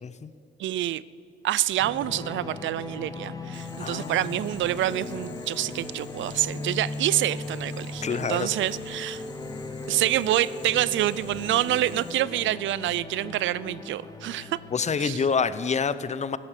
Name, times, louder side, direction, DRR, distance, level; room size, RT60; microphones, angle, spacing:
voice 1, 0.6-1.0 1.4-9.2 9.9-14.6 15.0-15.2, right 14 dB, 75° right, 19 dB, 0.5 m, -27 dB
sound 1, 1.8-15.1, left 2 dB, 20° left, 1.8 m, -38 dB
Boiling, 3.5-12.2, left 6 dB, 60° left, 1.9 m, -49 dB
voice 2, 3.8-4.3 8.0-8.5 14.7-16.4, left 5 dB, 35° left, 15 dB, 0.7 m, -27 dB
15.0 x 11.0 x 8.3 m, 2.4 s
cardioid pair, 90°, 20 cm